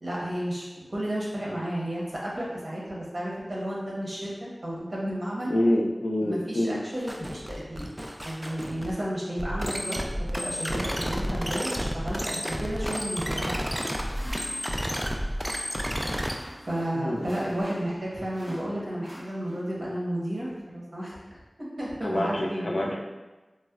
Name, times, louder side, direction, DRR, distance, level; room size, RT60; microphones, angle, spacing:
voice 1, 0.0-4.3 4.6-5.5 6.2-7.9 8.2-10.1 10.3-13.6 16.6-21.2 21.8-22.9, right 1 dB, 65° right, -6 dB, 0.9 m, -32 dB
voice 2, 5.5-6.8 7.8-7.9 16.9-17.3 22.0-23.0, left 1 dB, 80° left, -2 dB, 0.4 m, -26 dB
sound 1, 7.0-8.9 9.4-16.4, equal, 10° right, 0.3 m, -31 dB
sound 2, 13.3-18.0 18.3-19.8, equal, 25° right, 1.4 m, -46 dB
4.1 x 2.0 x 2.3 m, 1.2 s
wide cardioid pair, 60°, 0 cm